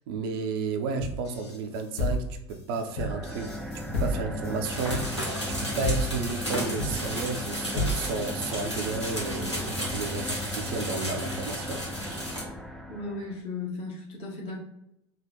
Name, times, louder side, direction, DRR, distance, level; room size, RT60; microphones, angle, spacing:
voice 1, 0.1-3.5 3.9-11.9, right 4 dB, 55° right, 0.5 m, -32 dB
sound 1, 1.0-8.3, left 1 dB, 70° left, 1.0 m, -32 dB
sound 2, 2.9-13.4, left 1 dB, ahead, 0.3 m, -37 dB
sound 3, 4.6-12.4, equal, 85° left, 1.4 m, -34 dB
voice 2, 12.9-14.6, left 3 dB, 40° left, 1.2 m, -36 dB
3.5 x 2.4 x 4.0 m
figure-of-eight pair, 75°, 15 cm